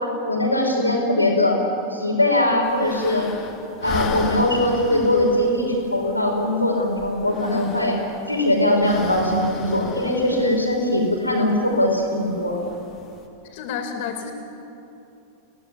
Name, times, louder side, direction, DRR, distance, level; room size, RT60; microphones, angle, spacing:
voice 1, 0.3-1.6 1.9-3.3 3.8-8.0 8.3-12.6, left 1 dB, 90° left, 0 dB, 5.6 m, -21 dB
sound 1, 2.6-13.3, left 5 dB, 35° left, 3.4 m, -37 dB
voice 2, 13.5-14.3, left 7 dB, 50° left, 4 dB, 4.3 m, -30 dB
29.0 x 18.0 x 9.9 m, 2.8 s
figure-of-eight pair, 90°, 0 cm